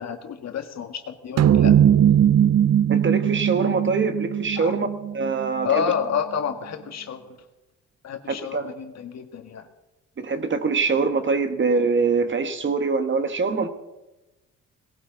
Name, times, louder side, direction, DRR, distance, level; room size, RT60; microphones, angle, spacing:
voice 1, 0.0-1.8 4.6-4.7 5.6-7.4 8.0-9.7, left 7 dB, 60° left, 6 dB, 1.8 m, -29 dB
sound 1, 1.4-6.0, right 10 dB, 60° right, 0.7 m, -19 dB
voice 2, 2.9-4.9 5.1-5.8 8.3-8.7 10.2-13.7, right 4 dB, 40° right, 8 dB, 1.6 m, -23 dB
19.0 x 17.5 x 4.0 m, 1.0 s
cardioid pair, 90°, 30 cm